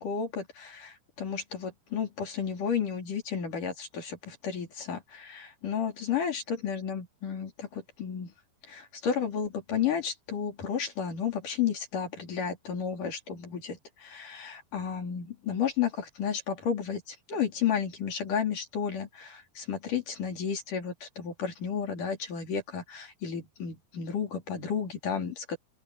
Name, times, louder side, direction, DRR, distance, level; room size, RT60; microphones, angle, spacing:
voice 1, 0.0-8.3 8.7-25.6, left 7 dB, 45° left, 4.3 m, -32 dB
open air
omnidirectional pair, 5.8 m